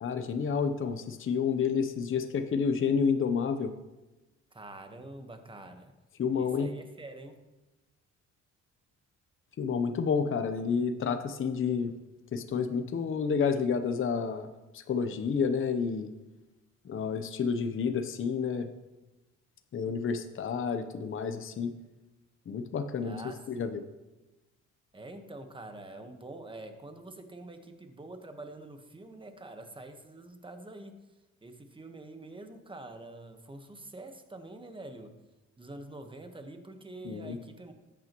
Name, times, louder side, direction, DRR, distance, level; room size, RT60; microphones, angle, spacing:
voice 1, 0.0-3.7 6.2-6.7 9.6-11.9 12.3-16.1 16.8-18.7 19.7-21.7 22.5-23.2 23.5-23.8 37.0-37.4, left 6 dB, 45° left, 8 dB, 0.8 m, -30 dB
voice 2, 4.5-6.0 6.3-7.5 23.0-23.7 24.9-31.0 31.4-35.2 35.6-37.7, right 2 dB, 15° right, 6 dB, 1.3 m, -46 dB
14.0 x 8.5 x 3.1 m, 1.1 s
cardioid pair, 90°, 30 cm